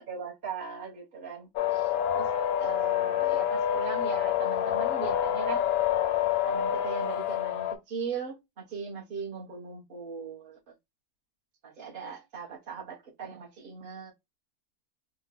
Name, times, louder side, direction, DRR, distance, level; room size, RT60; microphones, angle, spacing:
voice 1, 0.0-2.3 2.6-5.6 6.4-10.6 11.6-14.1, right 6 dB, 35° right, 1.3 m, -39 dB
sound 1, 1.6-7.7, left 10 dB, 70° left, 1.0 m, -27 dB
3.5 x 2.4 x 3.6 m
omnidirectional pair, 1.7 m